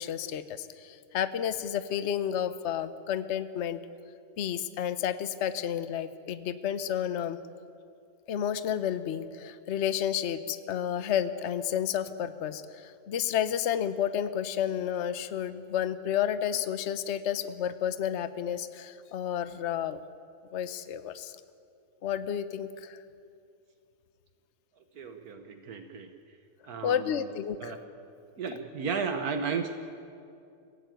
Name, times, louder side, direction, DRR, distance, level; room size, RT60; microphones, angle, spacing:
voice 1, 0.0-3.8 4.4-7.4 8.3-20.0 20.5-21.3 22.0-23.0 26.8-27.7, left 9 dB, 55° left, 12 dB, 1.0 m, -31 dB
voice 2, 24.9-26.1 26.6-27.3 27.6-27.8 28.4-29.7, right 5 dB, 75° right, 6 dB, 1.7 m, -34 dB
23.0 x 16.5 x 9.2 m, 2.5 s
omnidirectional pair, 1.6 m